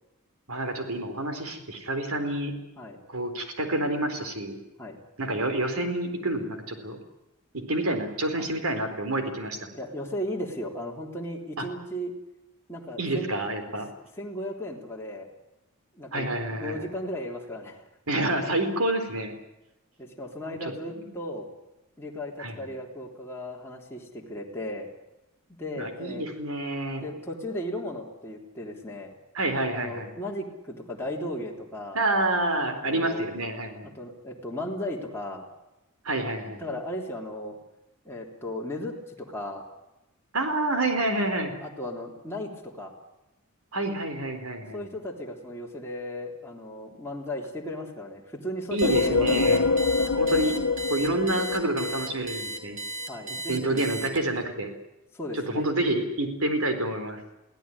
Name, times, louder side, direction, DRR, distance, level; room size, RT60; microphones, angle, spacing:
voice 1, 0.5-2.5 3.1-4.6 5.2-7.0 7.7-9.6 11.6-11.7 13.0-13.9 16.1-16.9 18.1-19.3 20.6-20.7 21.0-21.1 22.4-22.6 25.8-27.0 29.3-30.1 31.9-33.9 36.0-36.7 40.3-41.5 43.7-44.8 48.7-49.6 50.2-50.5 50.9-52.8 53.3-54.7 55.3-57.2, right 1 dB, 70° right, 7 dB, 4.3 m, -28 dB
voice 2, 9.7-12.2 12.7-13.3 13.7-13.8 14.2-15.3 15.9-17.9 20.0-21.5 22.0-24.9 25.6-26.3 27.0-29.1 29.7-32.0 32.9-33.2 33.8-35.5 36.6-37.6 38.1-39.6 41.6-42.9 44.7-49.5 53.1-53.8 55.1-55.7, left 1 dB, 10° left, -2 dB, 3.5 m, -36 dB
sound 1, 48.8-52.4, left 4 dB, 70° left, 1.2 m, -25 dB
Alarm, 48.8-54.4, right 2 dB, 35° right, 3.3 m, -35 dB
23.5 x 16.5 x 9.9 m, 0.96 s
head